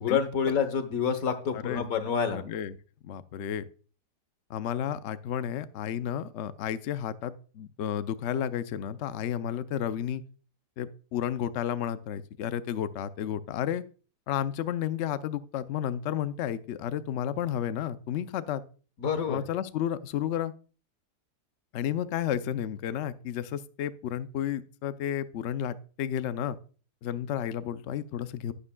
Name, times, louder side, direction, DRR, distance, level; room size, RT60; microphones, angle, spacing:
voice 1, 0.0-2.5 19.0-19.4, left 7 dB, 55° left, 10 dB, 1.4 m, -28 dB
voice 2, 2.3-2.7 3.0-3.6 4.5-10.2 10.8-13.8 14.3-18.6 19.3-20.5 21.7-26.6 27.0-28.5, left 10 dB, 90° left, 12 dB, 0.6 m, -32 dB
11.5 x 9.8 x 2.2 m, 0.39 s
omnidirectional pair, 1.8 m